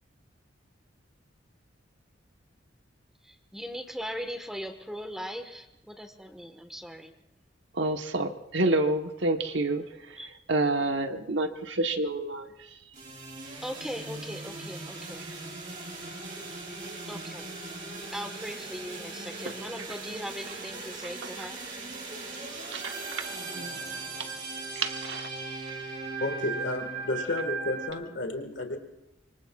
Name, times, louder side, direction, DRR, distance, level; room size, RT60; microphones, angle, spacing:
voice 1, 3.2-7.1 10.2-10.3 13.6-15.2 17.1-17.5 18.1-21.6, equal, 5° right, 6 dB, 1.4 m, -39 dB
voice 2, 7.7-12.8 15.2-15.3 19.4-19.5 21.2-21.5 22.3-23.3 23.6-23.8 24.2-24.3 24.7-25.3 25.7-25.8, right 2 dB, 80° right, 6 dB, 1.2 m, -30 dB
sound 1, 12.9-27.9, right 3 dB, 45° right, 3.8 m, -38 dB
voice 3, 26.2-28.8, left 2 dB, 75° left, 5 dB, 1.7 m, -32 dB
25.0 x 24.0 x 2.4 m, 0.90 s
head